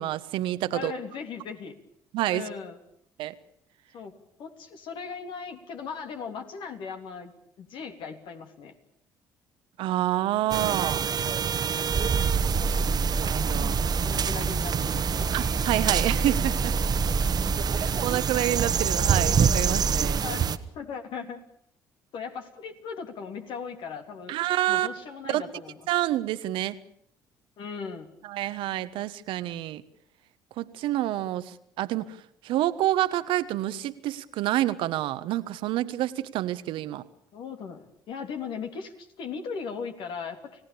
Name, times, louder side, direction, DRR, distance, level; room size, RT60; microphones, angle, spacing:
voice 1, 0.0-0.9 2.1-2.5 3.2-3.3 9.8-11.1 13.2-13.8 15.3-16.8 17.7-20.2 24.3-24.9 25.3-25.4 25.9-26.8 28.2-29.8 30.6-32.2 32.4-37.0, right 14 dB, 70° right, 12 dB, 1.2 m, -28 dB
voice 2, 0.7-1.7 2.3-2.8 3.9-4.1 4.4-7.3 7.6-8.7 12.6-13.1 13.3-15.4 20.2-21.4 22.1-24.3 24.7-25.8 27.6-28.1 37.3-40.6, left 6 dB, 65° left, 5 dB, 3.3 m, -38 dB
sound 1, 10.5-20.6, right 7 dB, 50° right, 1.4 m, -27 dB
sound 2, 11.9-20.2, right 3 dB, 15° right, 2.5 m, -29 dB
30.0 x 17.0 x 7.0 m, 0.70 s
hypercardioid pair, 55°, 9 cm